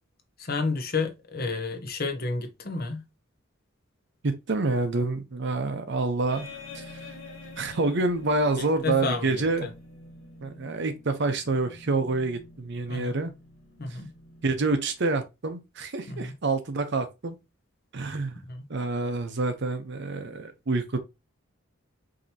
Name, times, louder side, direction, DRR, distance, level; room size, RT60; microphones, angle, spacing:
voice 1, 0.4-3.0 8.5-9.7 12.9-13.2 13.8-14.1 16.1-16.3 18.5-18.7, left 4 dB, 45° left, 0.9 m, -31 dB
voice 2, 4.2-6.5 6.7-6.8 7.6-9.7 10.4-13.3 14.4-17.4 17.9-18.4 18.7-21.0, right 3 dB, 55° right, 0.7 m, -27 dB
sound 1, 6.3-15.2, left 2 dB, 75° left, 1.9 m, -47 dB
5.1 x 2.9 x 2.8 m
head